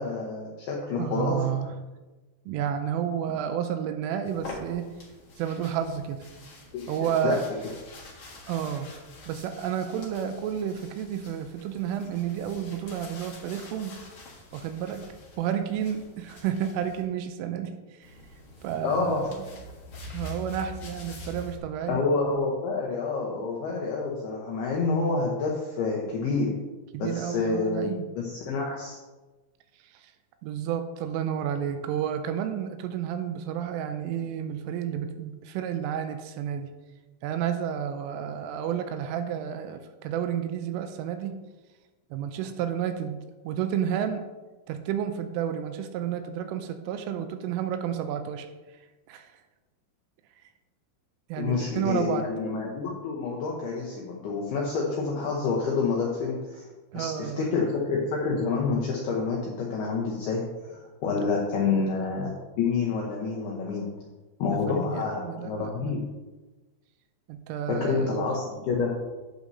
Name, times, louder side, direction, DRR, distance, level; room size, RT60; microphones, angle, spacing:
voice 1, 0.0-1.4 6.7-6.9 7.2-7.4 18.8-19.3 21.9-26.5 27.0-29.0 51.4-56.6 56.9-63.9 64.4-66.0 67.7-69.0, left 4 dB, 80° left, -2 dB, 2.3 m, -28 dB
voice 2, 1.0-1.7 2.5-4.9 5.4-6.3 6.9-7.4 8.5-8.9 9.3-14.0 14.5-15.1 15.4-18.1 18.6-19.5 20.1-22.0 26.9-28.1 29.8-30.1 30.4-36.7 37.2-41.4 42.1-44.2 44.7-48.5 49.1-49.3 51.3-52.3 56.9-57.5 61.6-61.9 64.5-65.9 67.3-68.4, right 9 dB, 85° right, 8 dB, 3.1 m, -31 dB
sound 1, 4.2-17.0 18.0-21.6, left 2 dB, 65° left, 1.5 m, -45 dB
11.0 x 8.3 x 2.7 m, 1.2 s
omnidirectional pair, 5.9 m